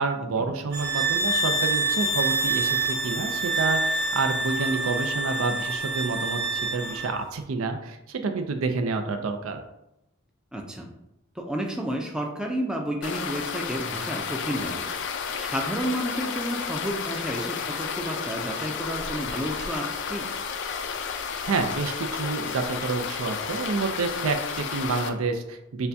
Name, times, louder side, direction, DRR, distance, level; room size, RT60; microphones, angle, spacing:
voice 1, 0.0-9.6 21.5-25.9, right 4 dB, 75° right, 6 dB, 0.5 m, -29 dB
sound 1, 0.7-7.1, right 2 dB, 45° right, 0.8 m, -26 dB
voice 2, 10.5-10.9 11.4-14.8 15.4-20.3, equal, 5° right, 1 dB, 0.4 m, -31 dB
sound 2, 13.0-25.1, left 6 dB, 60° left, 0.4 m, -32 dB
6.6 x 2.3 x 2.6 m, 0.86 s
head